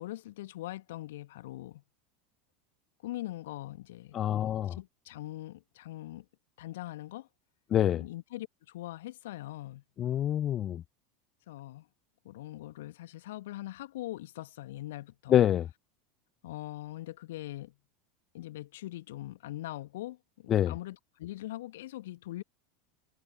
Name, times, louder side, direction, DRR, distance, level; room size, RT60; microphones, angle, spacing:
voice 1, 0.0-1.8 3.0-4.2 4.7-6.3 6.6-7.3 7.9-9.8 11.5-11.9 12.2-15.4 16.4-17.8 18.3-22.4, left 16 dB, 60° left, 1.9 m, -42 dB
voice 2, 4.1-4.8 7.7-8.0 10.0-10.8 15.3-15.7 20.5-20.7, left 11 dB, 35° left, 0.3 m, -26 dB
figure-of-eight pair, 80°, 0 cm